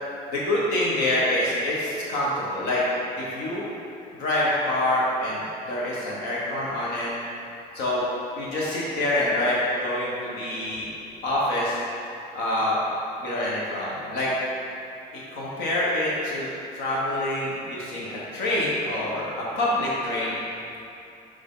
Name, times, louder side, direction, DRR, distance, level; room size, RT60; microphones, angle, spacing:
voice 1, 0.3-2.8 3.3-3.7 4.2-7.1 7.7-8.1 8.4-10.9 11.2-11.8 12.3-12.7 13.2-14.3 15.3-16.5 16.7-19.3 19.6-20.4, left 1 dB, 90° left, -6 dB, 1.2 m, -26 dB
6.4 x 5.1 x 3.8 m, 2.7 s
cardioid pair, 110°, 17 cm